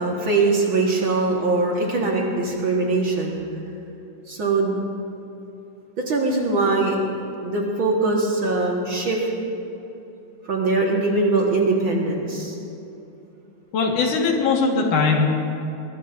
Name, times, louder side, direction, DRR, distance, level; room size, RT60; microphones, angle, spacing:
voice 1, 0.0-3.4 4.3-4.8 6.1-7.0 7.4-9.3 10.5-12.6, right 3 dB, 50° right, -2 dB, 2.1 m, -22 dB
voice 2, 13.7-15.3, left 4 dB, 85° left, 0 dB, 3.2 m, -20 dB
22.5 x 20.0 x 2.7 m, 2.9 s
omnidirectional pair, 3.5 m